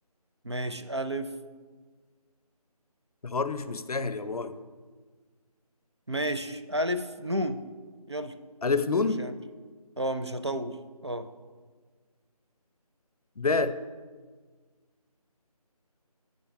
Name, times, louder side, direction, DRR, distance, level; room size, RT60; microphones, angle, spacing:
voice 1, 0.4-1.3 6.1-7.6 8.1-8.3 9.0-9.3 10.0-10.8 11.0-11.3, equal, 45° right, 9 dB, 0.4 m, -31 dB
voice 2, 3.2-4.5 8.6-9.2 13.4-13.8, left 4 dB, 70° left, 12 dB, 0.6 m, -27 dB
7.3 x 5.3 x 5.8 m, 1.5 s
figure-of-eight pair, 180°, 20 cm